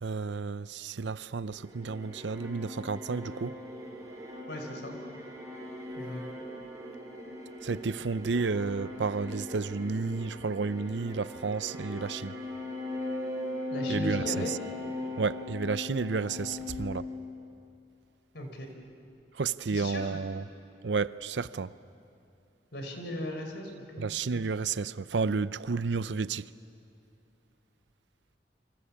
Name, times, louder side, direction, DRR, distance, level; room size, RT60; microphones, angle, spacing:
voice 1, 0.0-3.5 7.6-12.3 13.9-14.6 15.2-17.0 19.4-20.4 20.8-21.7 24.0-26.4, right 4 dB, 75° right, 0.6 m, -31 dB
sound 1, 1.4-17.8, left 2 dB, 20° right, 5.2 m, -39 dB
voice 2, 4.5-4.9 5.9-6.2 13.7-14.6 18.3-18.7 19.7-20.1 22.7-24.1, left 1 dB, 70° left, 4.6 m, -38 dB
27.5 x 25.5 x 8.6 m
head